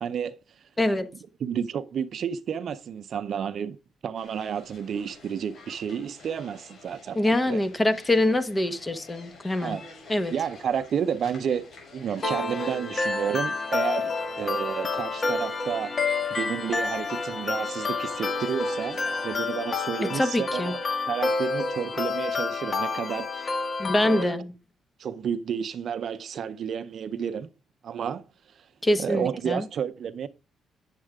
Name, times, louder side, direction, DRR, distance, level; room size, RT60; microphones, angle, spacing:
voice 1, 0.0-0.3 1.4-3.8 4.0-7.2 7.5-7.6 9.6-9.8 10.3-11.6 11.9-15.9 16.4-20.8 21.1-23.6 24.0-24.3 25.0-27.5 27.8-28.2 29.0-30.3, right 8 dB, 60° right, 0.6 m, -31 dB
voice 2, 0.8-1.1 7.1-9.8 10.1-10.3 20.0-20.7 23.8-24.5 28.8-29.7, left 1 dB, 20° left, 1.1 m, -24 dB
sound 1, 4.1-19.3, left 3 dB, 60° left, 6.0 m, -49 dB
sound 2, 12.2-24.2, left 4 dB, 40° left, 1.5 m, -29 dB
9.0 x 7.4 x 3.5 m
cardioid pair, 90°, 0 cm